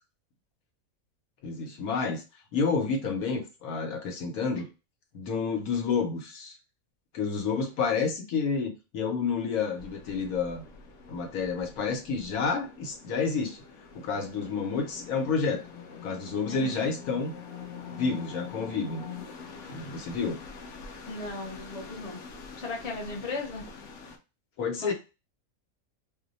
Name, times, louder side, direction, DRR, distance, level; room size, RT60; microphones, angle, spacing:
voice 1, 1.4-2.2 2.5-4.6 5.1-6.5 7.1-10.6 11.1-13.6 13.9-15.6 16.0-17.3 17.9-19.0 19.7-20.4 24.6-24.9, left 5 dB, 80° left, 3 dB, 1.2 m, -29 dB
sound 1, 9.8-24.2, left 5 dB, 65° left, 0.9 m, -45 dB
voice 2, 16.5-16.8 21.1-22.2 22.6-23.7 24.8-24.9, left 2 dB, 35° left, 0 dB, 0.7 m, -36 dB
2.7 x 2.1 x 3.9 m, 0.29 s
omnidirectional pair, 1.5 m